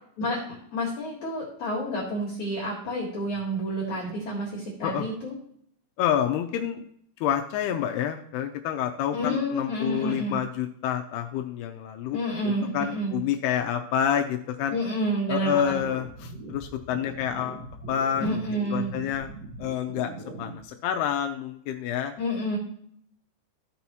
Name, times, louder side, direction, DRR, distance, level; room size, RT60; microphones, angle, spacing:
voice 1, 0.7-5.3 9.1-10.4 12.1-13.1 14.7-15.7 18.2-18.9 22.2-22.6, equal, 55° left, -4 dB, 2.6 m, -29 dB
voice 2, 6.0-6.8 7.2-12.2 12.4-14.8 15.3-18.4 18.7-19.3 19.6-20.1 20.4-22.1, left 9 dB, 85° left, 4 dB, 2.4 m, -28 dB
sound 1, 15.6-20.6, right 1 dB, 75° right, 1.0 m, -41 dB
14.5 x 5.5 x 3.0 m, 0.65 s
omnidirectional pair, 5.0 m